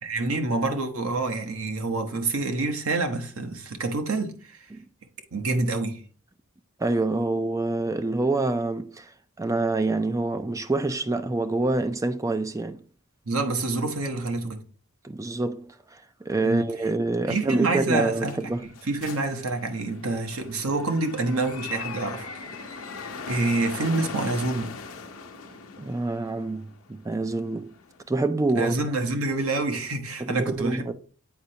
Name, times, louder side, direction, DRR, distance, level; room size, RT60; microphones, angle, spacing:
voice 1, 0.0-4.6 5.3-6.0 13.3-14.6 16.4-16.7 17.3-18.3 18.6-22.3 23.3-24.7 28.5-30.9, right 2 dB, 75° right, 1.0 m, -27 dB
voice 2, 6.8-9.1 9.4-12.8 15.0-18.6 25.8-27.7 28.1-28.7 30.2-30.9, right 2 dB, 15° right, 0.4 m, -26 dB
sound 1, 17.7-28.0, left 5 dB, 75° left, 0.7 m, -40 dB
8.1 x 4.4 x 2.8 m
head